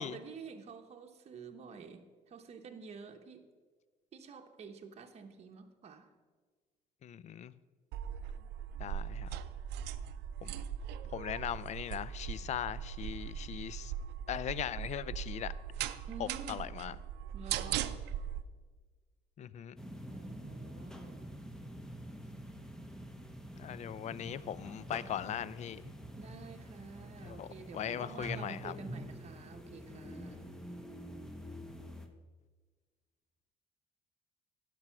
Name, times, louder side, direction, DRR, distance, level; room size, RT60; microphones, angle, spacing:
voice 1, 0.0-3.4 4.1-6.1 16.1-16.6 17.3-18.0 20.1-21.3 26.2-30.4, right 5 dB, 40° right, 4 dB, 0.9 m, -49 dB
voice 2, 7.0-7.5 8.8-9.4 10.4-10.6 11.1-13.9 14.3-15.5 16.2-17.0 19.4-19.8 23.6-25.9 27.2-28.8, left 10 dB, 45° left, 18 dB, 0.4 m, -39 dB
sound 1, 7.9-18.4, right 9 dB, 80° right, 0.5 m, -39 dB
sound 2, 19.8-32.1, equal, 5° left, 0.9 m, -47 dB
10.5 x 6.2 x 5.7 m, 1.4 s
cardioid pair, 110°, 17 cm